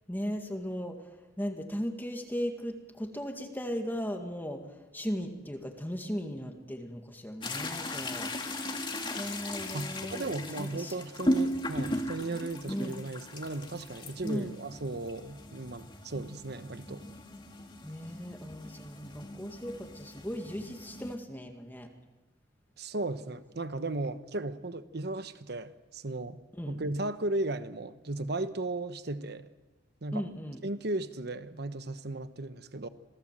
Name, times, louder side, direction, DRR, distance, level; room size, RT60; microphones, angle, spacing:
voice 1, 0.1-1.1 1.4-4.6 4.9-8.3 9.2-11.0 12.7-13.0 14.2-14.5 17.8-21.9 26.6-26.8 30.1-30.6, equal, 10° left, 2.1 m, -37 dB
sound 1, 7.4-21.2, left 1 dB, 25° left, 2.2 m, -37 dB
voice 2, 9.7-17.0 22.8-26.4 26.7-29.5 30.0-30.2 30.6-32.9, right 2 dB, 60° right, 1.1 m, -36 dB
27.0 x 18.0 x 7.6 m
head